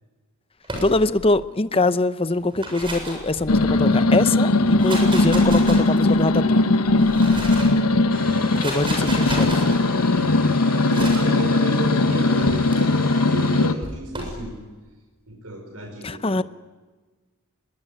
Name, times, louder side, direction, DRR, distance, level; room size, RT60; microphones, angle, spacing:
sound 1, 0.6-1.3 2.4-3.9 4.6-6.2 6.9-7.8 8.4-9.8 10.9-11.4 12.4-12.8 13.8-14.4, right 1 dB, 25° right, 7.3 m, -32 dB
voice 1, 0.8-6.6 8.6-9.7 16.0-16.4, left 2 dB, 25° left, 13 dB, 0.7 m, -23 dB
sound 2, 3.5-13.7, left 2 dB, 85° left, 1.1 m, -19 dB
voice 2, 7.2-7.8 10.7-14.6 15.3-16.4, right 1 dB, 85° right, 3 dB, 5.2 m, -33 dB
Domestic sounds home sounds, 8.1-13.7, right 3 dB, 40° right, 5.5 m, -39 dB
25.0 x 21.5 x 10.0 m, 1.3 s
head